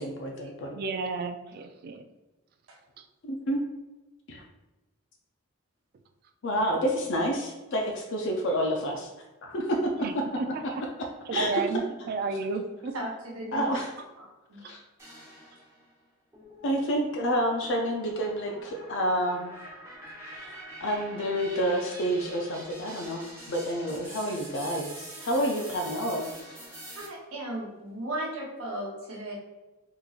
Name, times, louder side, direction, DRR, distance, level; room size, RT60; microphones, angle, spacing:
voice 1, 0.0-0.8 3.2-3.6 4.3-4.4 6.4-9.1 9.4-10.7 11.0-11.6 12.3-12.4 13.5-13.9 14.7-14.8 16.6-19.6 20.2-26.3, equal, 65° left, 1 dB, 0.5 m, -29 dB
voice 2, 0.7-2.0 10.0-10.8 11.3-12.9, right 4 dB, 50° right, 8 dB, 0.3 m, -32 dB
voice 3, 12.9-13.7 14.2-14.6 27.0-29.4, right 1 dB, 85° right, -2 dB, 0.9 m, -37 dB
sound 1, 15.0-15.9 16.3-27.1, right 1 dB, 15° right, 1.0 m, -45 dB
3.7 x 2.9 x 2.4 m, 1.1 s
head